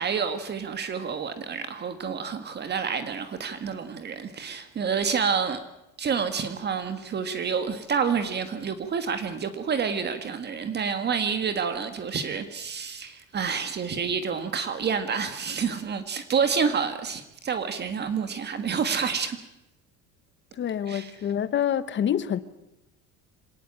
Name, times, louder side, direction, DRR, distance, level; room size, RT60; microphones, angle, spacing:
voice 1, 0.0-5.6 6.0-19.4 20.9-21.1, right 6 dB, 30° right, 1.7 m, -28 dB
voice 2, 20.5-22.4, left 9 dB, 35° left, 1.2 m, -27 dB
26.0 x 18.5 x 8.9 m
cardioid pair, 165°, 32 cm